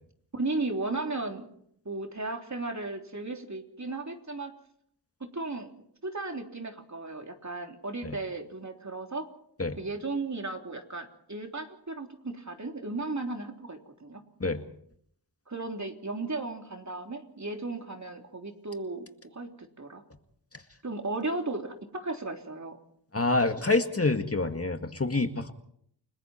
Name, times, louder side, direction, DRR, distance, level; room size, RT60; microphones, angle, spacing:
voice 1, 0.3-1.5 1.9-4.5 5.2-5.7 6.0-9.3 9.8-14.2 15.5-19.1 19.3-20.0 20.8-22.8, right 2 dB, 40° right, 3 dB, 3.4 m, -35 dB
voice 2, 23.1-25.5, left 3 dB, 35° left, 6 dB, 2.0 m, -27 dB
30.0 x 20.5 x 4.5 m, 0.68 s
cardioid pair, 55°, 43 cm